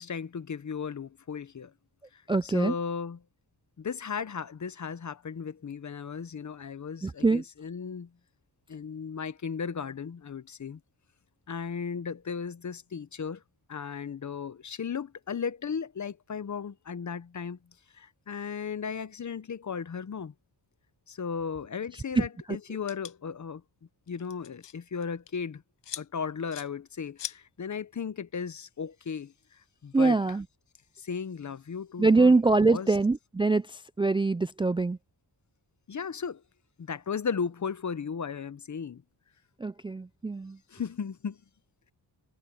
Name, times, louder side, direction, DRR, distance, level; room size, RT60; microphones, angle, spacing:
voice 1, 0.0-1.7 2.1-3.2 3.8-8.1 8.7-10.8 11.5-13.4 13.7-17.6 17.9-20.3 21.1-23.6 24.1-25.6 26.0-29.3 29.8-30.4 31.0-33.0 35.9-36.4 36.8-39.0 40.7-41.4, left 6 dB, 45° left, 1.0 m, -36 dB
voice 2, 2.3-2.7 7.0-7.4 22.2-22.3 29.9-30.4 32.0-33.6 34.0-35.0 39.6-40.6, right 3 dB, 15° right, 0.4 m, -23 dB
sound 1, 22.9-23.1 24.1-24.7 25.0-25.3 25.8-26.0 26.5-26.7 27.2-27.4, left 11 dB, 90° left, 0.9 m, -39 dB
cardioid pair, 90°, 42 cm